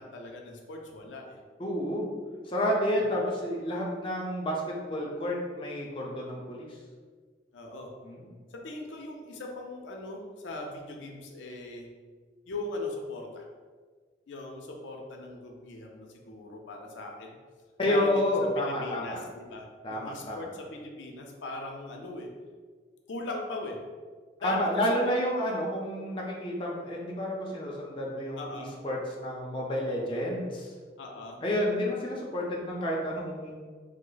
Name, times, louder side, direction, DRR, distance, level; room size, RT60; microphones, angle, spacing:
voice 1, 0.0-1.4 3.2-3.3 7.5-7.9 8.5-11.9 12.5-13.4 14.3-17.4 17.9-18.1 18.6-22.3 23.1-23.8 24.4-24.6 25.0-25.4 28.4-28.7 31.0-31.4, left 2 dB, 85° left, 1 dB, 0.5 m, -40 dB
voice 2, 1.6-2.1 2.4-6.8 8.0-8.2 17.8-19.2 19.8-20.4 24.4-30.7 31.4-33.5, left 1 dB, 30° left, -3 dB, 0.5 m, -30 dB
3.1 x 2.0 x 3.8 m, 1.5 s
head